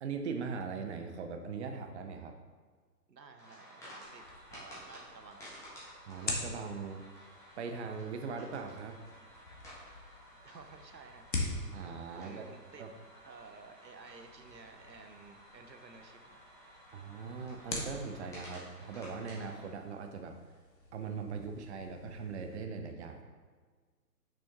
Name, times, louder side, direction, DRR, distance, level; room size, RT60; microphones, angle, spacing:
voice 1, 0.0-2.4 6.1-7.0 7.6-9.0 11.7-12.5 12.8-12.9 16.9-20.4 20.9-23.3, right 5 dB, 45° right, 5 dB, 0.6 m, -40 dB
voice 2, 3.1-4.2 4.5-5.5 10.4-11.3 12.2-12.9 13.2-16.4, right 4 dB, 85° right, 6 dB, 0.9 m, -53 dB
sound 1, 3.4-19.7, equal, 5° left, 1.5 m, -54 dB
sound 2, 4.0-22.6, left 2 dB, 85° left, 1.5 m, -45 dB
6.3 x 6.2 x 3.0 m, 1.5 s
figure-of-eight pair, 130°, 49 cm